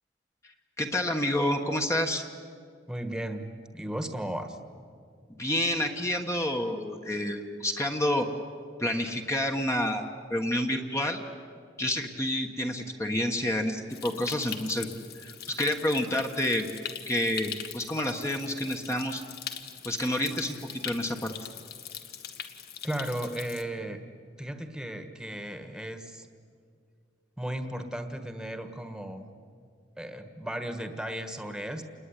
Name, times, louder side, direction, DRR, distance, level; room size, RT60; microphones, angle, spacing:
voice 1, 0.8-2.2 5.4-8.3 8.8-11.2 11.8-14.9 15.2-16.7 17.1-19.2 19.8-21.3, left 1 dB, 15° left, 3 dB, 1.4 m, -29 dB
voice 2, 2.9-3.5 3.7-4.6 22.8-24.0 24.4-26.3 27.4-29.3 30.0-31.8, right 1 dB, 5° right, 7 dB, 1.6 m, -35 dB
Stream, 13.9-23.6, left 8 dB, 60° left, 1.8 m, -41 dB
28.5 x 20.5 x 9.9 m, 2.2 s
head